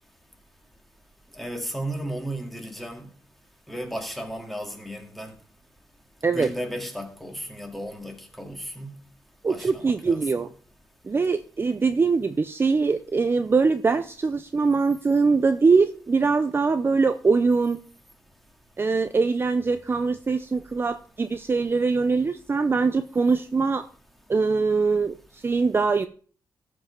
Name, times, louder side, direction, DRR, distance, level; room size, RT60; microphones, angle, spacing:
voice 1, 1.3-3.1 3.7-5.3 6.2-9.0 9.5-10.4, right 1 dB, ahead, 2.1 m, -34 dB
voice 2, 9.4-10.5 11.0-17.8 18.8-23.9 24.3-26.1, right 4 dB, 30° right, 0.5 m, -22 dB
14.0 x 5.4 x 5.9 m
cardioid pair, 110°, 8 cm